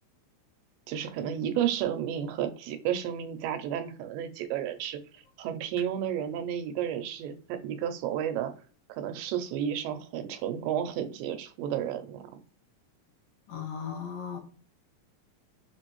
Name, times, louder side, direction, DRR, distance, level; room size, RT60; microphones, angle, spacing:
voice 1, 0.9-5.0 5.4-8.5 8.9-12.3, right 9 dB, 85° right, 2.3 m, -32 dB
voice 2, 13.5-14.4, left 7 dB, 80° left, 2.4 m, -36 dB
6.2 x 2.6 x 3.0 m
omnidirectional pair, 3.9 m